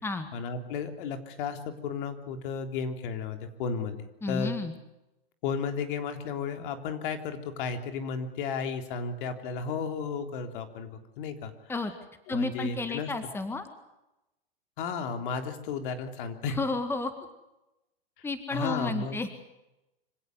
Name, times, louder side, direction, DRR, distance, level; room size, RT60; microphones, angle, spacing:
voice 1, 0.3-4.5 5.4-10.9 11.2-11.5 12.3-13.1 14.8-16.6 18.2-18.3 18.5-19.2, left 5 dB, 60° left, 7 dB, 3.6 m, -33 dB
voice 2, 4.2-4.7 11.7-11.9 12.3-13.7 16.5-17.1 18.2-19.3, left 3 dB, 10° left, 9 dB, 1.9 m, -31 dB
26.0 x 17.0 x 8.1 m, 0.95 s
hypercardioid pair, 130°, 30 cm